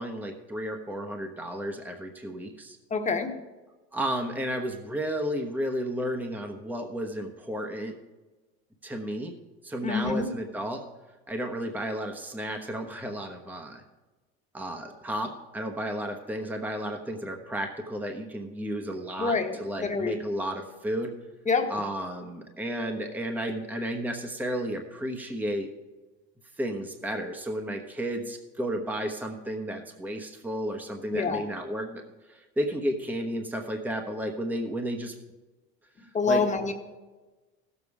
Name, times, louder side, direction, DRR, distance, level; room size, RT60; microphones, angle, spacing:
voice 1, 0.0-2.8 3.9-8.0 8.8-9.3 9.6-10.9 11.3-13.8 14.5-21.1 21.7-25.7 26.6-32.0 32.3-35.1 36.0-36.4, equal, 5° right, 3 dB, 1.1 m, -32 dB
voice 2, 2.9-3.3 9.8-10.3 19.2-20.2 21.4-21.7 31.1-31.5 36.0-36.7, left 4 dB, 25° left, 5 dB, 1.4 m, -27 dB
15.5 x 7.3 x 4.8 m, 1.2 s
supercardioid pair, 110°, 30 cm